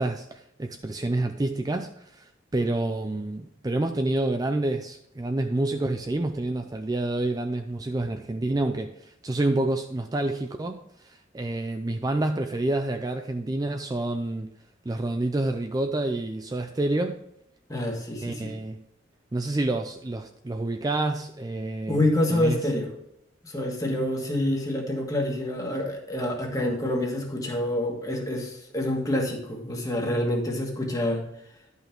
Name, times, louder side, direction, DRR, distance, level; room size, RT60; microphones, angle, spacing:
voice 1, 0.0-14.5 14.8-17.2 18.2-18.8 19.3-22.0 22.3-22.6, right 2 dB, 20° right, 6 dB, 0.4 m, -28 dB
voice 2, 17.7-18.5 21.9-22.9 23.4-31.2, left 1 dB, 20° left, 1 dB, 1.6 m, -27 dB
11.0 x 5.6 x 4.5 m, 0.78 s
head